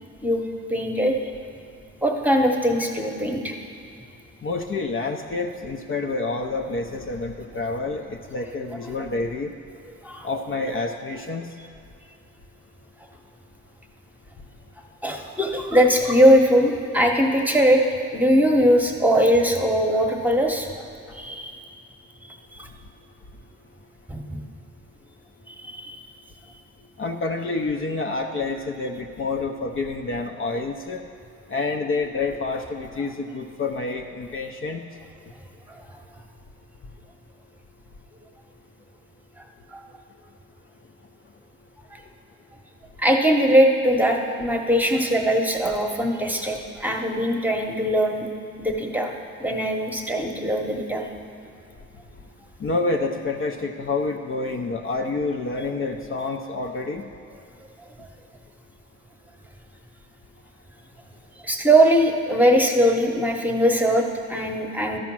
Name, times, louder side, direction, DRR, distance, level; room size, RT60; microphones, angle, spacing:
voice 1, 0.7-1.2 2.0-3.5 10.0-10.3 15.0-17.8 18.1-21.6 22.6-22.7 24.1-24.4 25.5-26.0 39.7-39.8 41.9-42.0 43.0-48.3 48.6-49.1 49.4-51.0 61.4-65.0, equal, 5° right, 2 dB, 1.0 m, -20 dB
voice 2, 4.4-9.5 10.2-11.5 27.0-31.0 31.5-34.8 52.6-57.0, left 3 dB, 45° left, 2 dB, 0.7 m, -28 dB
12.5 x 5.2 x 6.0 m, 2.4 s
cardioid pair, 90°, 30 cm